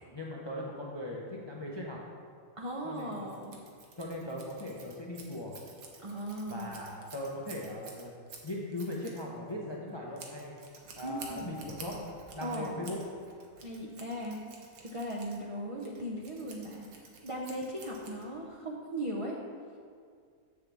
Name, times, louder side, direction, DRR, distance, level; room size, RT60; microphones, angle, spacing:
voice 1, 0.1-2.0 2.8-3.3 4.0-5.6 6.5-8.1 8.4-10.5 11.0-12.1 12.3-13.0, left 1 dB, 35° left, -3 dB, 0.4 m, -39 dB
voice 2, 2.6-3.6 6.0-6.8 11.0-11.5 12.4-12.8 13.6-14.4 14.8-19.4, equal, 50° right, -3 dB, 0.3 m, -38 dB
Scissors, 2.9-18.6, right 4 dB, 85° right, 1.4 m, -52 dB
7.2 x 6.4 x 3.4 m, 2.1 s
omnidirectional pair, 1.5 m